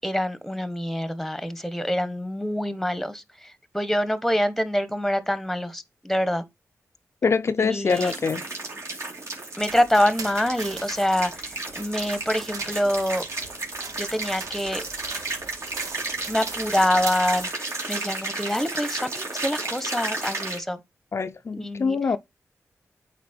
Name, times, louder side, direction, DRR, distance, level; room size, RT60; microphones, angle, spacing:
voice 1, 0.0-6.4 7.6-8.1 9.6-13.2 14.0-14.8 16.3-20.8 21.5-22.0, left 1 dB, 5° left, 1.1 m, -26 dB
voice 2, 7.2-8.4 21.1-22.2, left 5 dB, 50° left, 0.4 m, -24 dB
sound 1, 7.9-20.6, right 3 dB, 55° right, 2.7 m, -33 dB
sound 2, 9.6-17.5, right 5 dB, 90° right, 1.1 m, -41 dB
8.3 x 4.2 x 4.3 m
cardioid pair, 70°, 6 cm